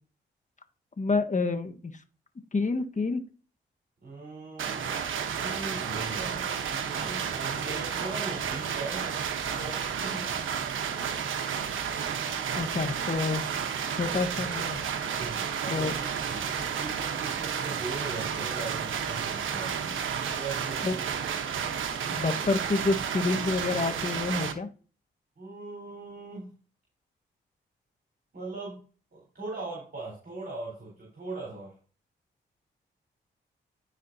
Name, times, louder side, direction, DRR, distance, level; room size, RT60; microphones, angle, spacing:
voice 1, 1.0-2.0 2.5-3.2 12.5-13.4 13.9-14.8 15.7-15.9 20.8-21.0 22.1-24.7, left 3 dB, 35° left, 7 dB, 1.5 m, -28 dB
voice 2, 4.0-9.1 9.6-10.5 15.1-21.1 25.4-26.5 28.3-28.8 29.1-31.8, right 3 dB, 50° right, -3 dB, 4.1 m, -40 dB
sound 1, 4.6-24.5, right 7 dB, 75° right, 1.1 m, -32 dB
14.5 x 5.0 x 2.8 m, 0.37 s
supercardioid pair, 40°, 21 cm